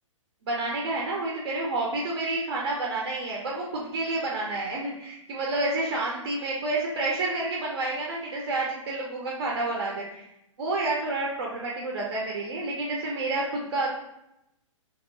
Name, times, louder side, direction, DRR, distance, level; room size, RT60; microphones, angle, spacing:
voice 1, 0.4-10.3 10.6-13.9, right 2 dB, 50° right, -2 dB, 0.8 m, -29 dB
3.0 x 2.9 x 3.9 m, 0.85 s
figure-of-eight pair, 115°, 17 cm